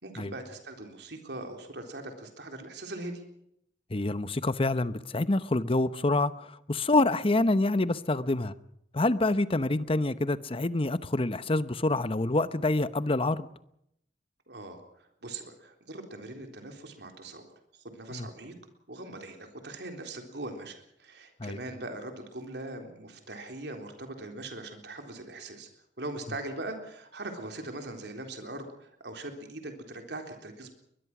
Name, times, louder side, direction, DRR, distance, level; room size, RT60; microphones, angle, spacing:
voice 1, 0.0-3.2 14.5-18.5 18.9-25.7 26.0-30.7, right 2 dB, 70° right, 3.8 m, -41 dB
voice 2, 3.9-8.5 8.9-13.5 18.1-18.3 21.4-21.6, left 2 dB, 30° left, 0.9 m, -27 dB
22.5 x 21.0 x 6.1 m
head